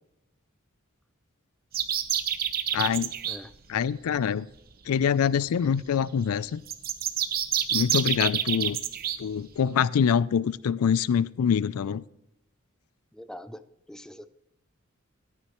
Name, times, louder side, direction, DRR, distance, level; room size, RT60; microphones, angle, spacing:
sound 1, 1.7-3.4 6.7-9.2, right 10 dB, 45° right, 0.7 m, -27 dB
voice 1, 2.7-3.1 3.7-4.5 4.9-6.6 7.7-8.8 9.2-12.0, left 7 dB, 90° left, 0.4 m, -25 dB
voice 2, 13.2-13.6 13.9-14.3, equal, 5° left, 0.4 m, -42 dB
14.5 x 9.6 x 3.0 m
head